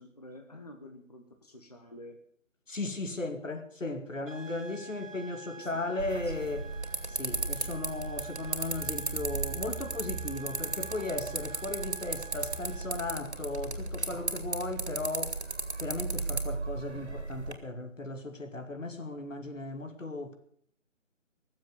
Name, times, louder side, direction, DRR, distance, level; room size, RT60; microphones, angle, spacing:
voice 1, 0.0-2.2 5.6-6.8, left 1 dB, 30° left, 1.1 m, -50 dB
voice 2, 2.7-6.6 7.1-15.4 15.8-20.3, left 2 dB, 75° left, 2.7 m, -36 dB
sound 1, 4.3-13.2, right 5 dB, 75° right, 1.4 m, -48 dB
sound 2, 6.0-17.5, right 3 dB, 55° right, 2.4 m, -35 dB
19.0 x 7.6 x 8.0 m
figure-of-eight pair, 175°, 39 cm